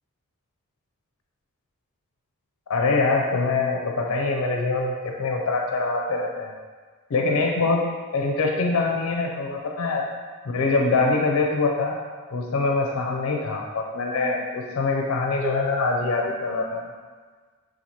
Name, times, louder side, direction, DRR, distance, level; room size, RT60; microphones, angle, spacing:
voice 1, 2.7-6.5 7.1-7.9 8.1-10.1 10.5-11.9 12.3-16.9, left 3 dB, 65° left, 0 dB, 0.4 m, -24 dB
4.1 x 2.5 x 2.9 m, 1.5 s
head